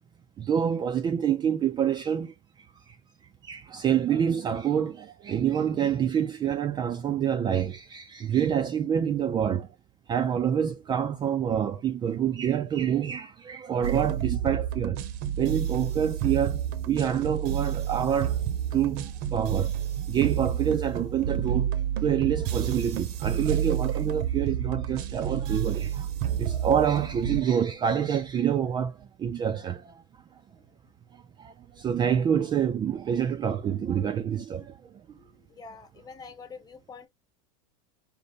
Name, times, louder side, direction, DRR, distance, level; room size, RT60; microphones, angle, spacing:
voice 1, 0.4-2.3 2.9-3.0 3.4-9.7 10.1-15.0 15.4-18.4 18.7-19.7 20.1-26.1 26.3-30.0 31.4-34.8, right 8 dB, 25° right, 0.4 m, -27 dB
sound 1, 13.8-27.4, right 10 dB, 55° right, 0.8 m, -30 dB
voice 2, 35.1-37.1, left 5 dB, 20° left, 1.1 m, -46 dB
5.2 x 2.1 x 4.0 m
supercardioid pair, 125°, 19 cm